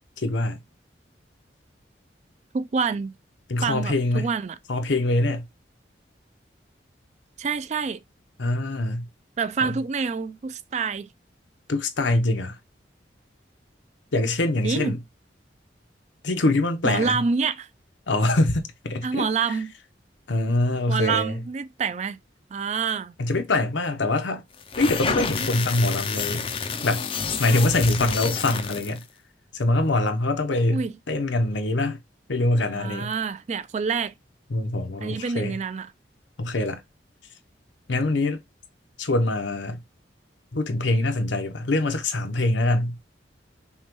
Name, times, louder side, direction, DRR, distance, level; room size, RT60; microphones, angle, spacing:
voice 1, 0.2-0.6 3.5-4.3 4.7-5.4 8.4-9.0 9.6-9.7 11.7-12.6 14.1-15.0 16.2-17.2 18.1-19.3 20.3-21.4 23.2-24.4 24.8-26.5 26.8-27.0 27.4-29.0 29.5-32.0 32.3-33.1 34.5-35.6 36.4-36.8 37.9-38.4 39.0-39.8 40.5-42.9, left 2 dB, 85° left, 0.8 m, -24 dB
voice 2, 2.5-3.1 3.6-4.6 7.4-8.0 9.4-11.1 14.6-15.0 16.8-17.7 19.0-19.7 20.9-22.2 22.5-23.1 25.4-25.6 30.7-31.0 32.7-34.1 35.0-35.9, right 5 dB, 40° right, 0.3 m, -27 dB
sound 1, 24.6-29.0, left 5 dB, 30° left, 0.4 m, -29 dB
5.5 x 2.3 x 3.0 m
head